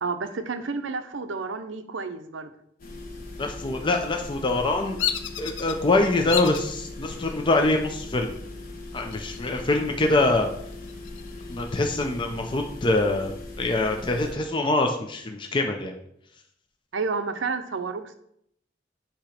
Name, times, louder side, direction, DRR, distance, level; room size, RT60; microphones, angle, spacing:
voice 1, 0.0-2.5 16.9-18.1, right 4 dB, 85° right, 9 dB, 0.6 m, -30 dB
sound 1, 2.8-14.3, left 2 dB, 50° left, 1.3 m, -39 dB
voice 2, 3.4-5.0 5.4-8.4 8.9-10.5 11.5-15.9, left 2 dB, 25° left, 3 dB, 0.5 m, -24 dB
Bird vocalization bird call bird song, 5.0-5.8 6.3-6.7 7.3-7.8 9.0-9.7 10.1-10.2 10.7-12.1, left 10 dB, 80° left, 0.5 m, -31 dB
8.5 x 2.9 x 5.0 m, 0.72 s
head